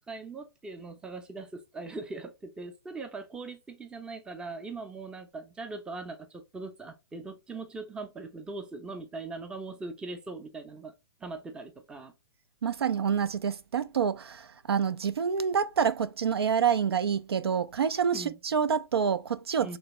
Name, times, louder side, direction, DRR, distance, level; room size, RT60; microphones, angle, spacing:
voice 1, 0.0-10.9 11.2-12.1 18.1-18.4 19.6-19.8, right 3 dB, 5° right, 0.5 m, -40 dB
voice 2, 12.6-19.8, right 7 dB, 80° right, 0.4 m, -27 dB
3.3 x 3.1 x 2.9 m
hypercardioid pair, 130°, 13 cm